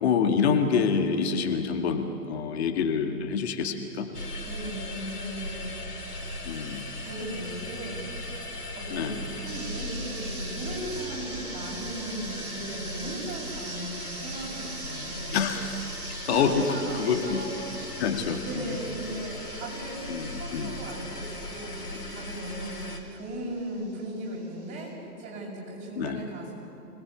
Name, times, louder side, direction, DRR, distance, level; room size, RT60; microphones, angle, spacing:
voice 1, 0.0-4.1 6.4-6.9 8.9-9.2 15.3-15.8 16.3-16.7 16.9-17.4 18.0-18.6 20.1-20.8 26.0-26.2, left 6 dB, 45° left, 5 dB, 2.2 m, -27 dB
sound 1, 4.1-23.0, left 2 dB, 85° left, 4.2 m, -38 dB
voice 2, 4.4-5.7 7.0-8.1 8.7-15.3 16.2-17.8 18.4-20.0 20.3-22.8 23.1-24.9 25.2-26.5, right 1 dB, 25° right, -2 dB, 7.7 m, -37 dB
sound 2, 9.5-24.9, right 3 dB, 65° right, 5.5 m, -44 dB
25.5 x 20.0 x 8.5 m, 2.8 s
figure-of-eight pair, 120°, 46 cm